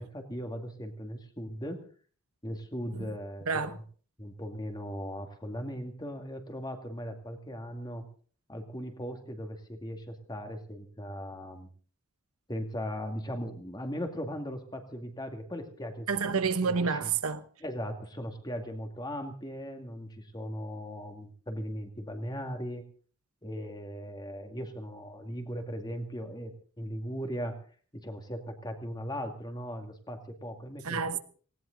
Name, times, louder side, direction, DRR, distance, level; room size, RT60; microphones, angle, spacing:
voice 1, 0.0-1.8 2.4-3.5 4.2-8.1 8.5-11.7 12.5-17.1 17.6-22.8 23.4-27.6 27.9-31.2, equal, 20° left, 2.2 m, -38 dB
voice 2, 3.5-3.8 16.1-17.4 30.8-31.2, right 5 dB, 75° right, 1.1 m, -29 dB
19.0 x 17.5 x 3.9 m
head